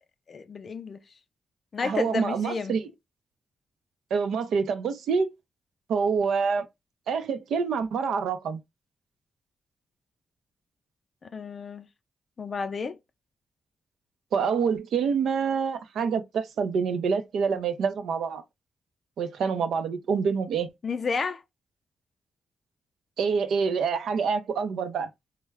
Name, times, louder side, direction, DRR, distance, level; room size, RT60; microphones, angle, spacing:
voice 1, 0.3-1.0 1.7-2.8 11.2-11.9 12.4-13.0 20.8-21.4, left 4 dB, 45° left, 0.4 m, -31 dB
voice 2, 1.8-2.8 4.1-5.3 5.9-6.7 7.1-8.6 14.3-18.4 19.2-20.7 23.2-25.1, right 6 dB, 85° right, 0.5 m, -26 dB
3.3 x 2.1 x 3.3 m
cardioid pair, 105°, 0 cm